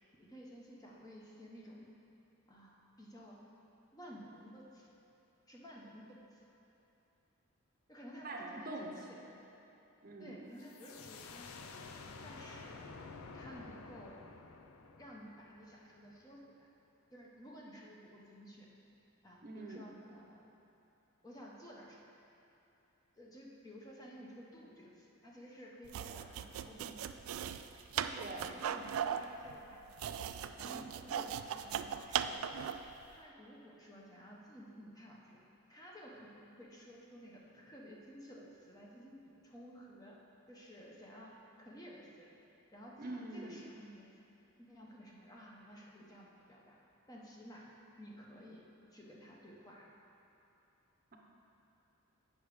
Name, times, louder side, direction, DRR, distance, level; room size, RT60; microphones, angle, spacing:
voice 1, 0.2-1.9 2.5-3.5 3.9-4.9 5.5-6.4 7.9-9.2 10.2-11.7 12.2-12.9 13.3-14.2 15.0-16.7 17.1-18.7 19.2-20.5 21.2-22.0 23.2-27.6 27.9-30.3 30.6-32.8 33.1-35.4 35.7-40.2 40.5-42.3 42.7-44.2 44.6-46.8 47.1-49.9, equal, 20° left, -3 dB, 0.9 m, -54 dB
voice 2, 8.2-8.9 9.2-9.3 10.0-10.4 19.4-19.8 28.2-28.5 43.0-43.6, right 2 dB, 45° right, 0 dB, 0.7 m, -44 dB
sound 1, 10.6-16.1, left 4 dB, 90° left, 0.5 m, -51 dB
sound 2, 25.8-32.9, right 8 dB, 80° right, 0.3 m, -38 dB
8.7 x 6.0 x 4.8 m, 2.9 s
head